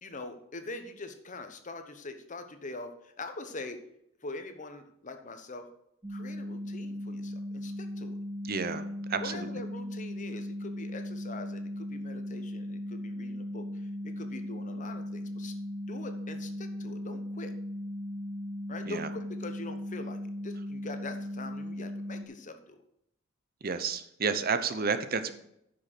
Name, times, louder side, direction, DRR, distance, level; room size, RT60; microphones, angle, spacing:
voice 1, 0.0-3.8 4.2-5.7 6.1-8.2 9.2-15.6 15.9-17.5 18.7-22.8, left 2 dB, 40° left, 8 dB, 1.1 m, -43 dB
sound 1, 6.0-22.2, left 1 dB, 15° right, 0.9 m, -38 dB
voice 2, 8.5-8.8 9.1-9.3 18.9-19.1 23.6-25.4, right 5 dB, 50° right, 11 dB, 0.8 m, -30 dB
9.9 x 6.4 x 6.1 m, 0.77 s
head